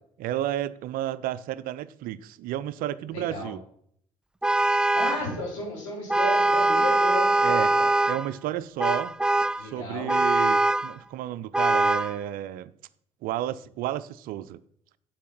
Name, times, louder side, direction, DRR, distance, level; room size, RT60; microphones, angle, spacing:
voice 1, 0.2-3.6 7.4-7.8 8.1-9.2 9.6-12.7 13.2-14.6, right 13 dB, 55° right, 0.6 m, -32 dB
voice 2, 3.1-3.5 4.9-7.9 9.6-10.1, left 1 dB, 75° left, 5.1 m, -33 dB
Vehicle horn car horn honking, 4.4-5.3 6.1-8.3 8.8-9.6 10.1-10.9 11.5-12.1, right 2 dB, 5° right, 0.3 m, -22 dB
8.3 x 8.0 x 5.9 m
figure-of-eight pair, 50°, 17 cm